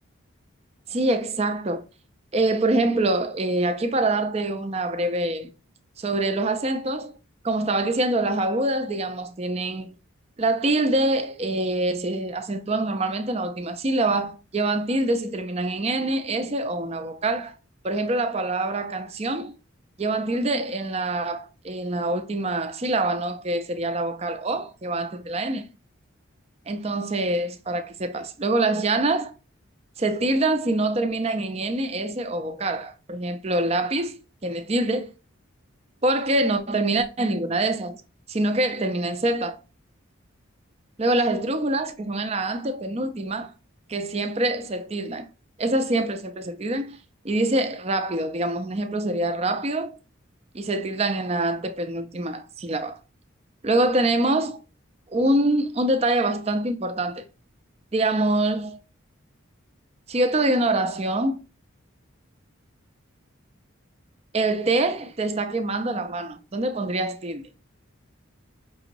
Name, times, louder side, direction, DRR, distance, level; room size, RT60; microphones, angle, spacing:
voice 1, 0.9-1.8 2.3-5.5 6.0-7.1 7.4-9.9 10.4-17.6 17.8-19.5 20.0-25.7 26.7-29.3 30.0-34.2 34.4-35.1 36.0-38.0 38.3-39.6 41.0-43.5 43.9-45.3 45.6-47.0 47.2-50.0 50.5-53.0 53.6-54.6 55.1-57.2 57.9-58.8 60.1-61.4 64.3-67.4, right 2 dB, 30° right, 0.5 m, -25 dB
5.4 x 2.9 x 2.5 m
head